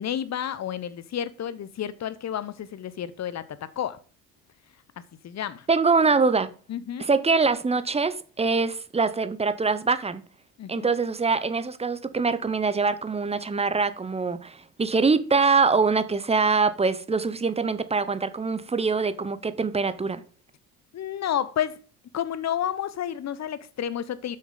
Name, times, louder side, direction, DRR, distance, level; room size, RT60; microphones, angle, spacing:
voice 1, 0.0-3.4 3.8-4.0 5.2-5.7 6.7-7.1 10.6-10.9 20.9-21.8 22.1-24.4, left 10 dB, 35° left, 0.9 m, -30 dB
voice 2, 5.7-6.5 7.0-10.2 10.7-20.2, right 4 dB, 15° right, 0.7 m, -24 dB
8.7 x 6.2 x 3.9 m
hypercardioid pair, 55°, 49 cm